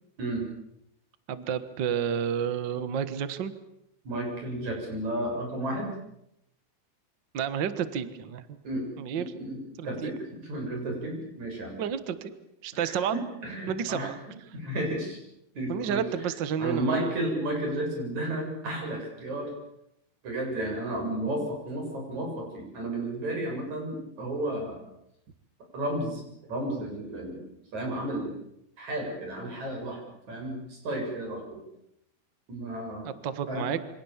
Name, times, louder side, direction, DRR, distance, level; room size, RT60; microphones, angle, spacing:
voice 1, 1.3-3.5 7.3-8.4 9.0-9.3 9.8-10.1 11.8-12.3 12.6-13.2 13.7-14.2 15.7-17.1 33.0-33.9, right 8 dB, 75° right, 12 dB, 1.0 m, -30 dB
voice 2, 4.1-5.9 8.6-8.9 9.2-9.6 9.8-10.1 10.4-11.8 12.7-12.9 13.4-14.1 14.5-15.2 15.6-16.0 16.6-19.5 20.2-24.9 25.7-27.4 27.7-28.3 28.8-30.0 30.3-31.6 32.5-33.1 33.5-33.7, right 1 dB, 50° right, 1 dB, 8.6 m, -32 dB
27.5 x 25.5 x 7.3 m, 0.81 s
omnidirectional pair, 4.4 m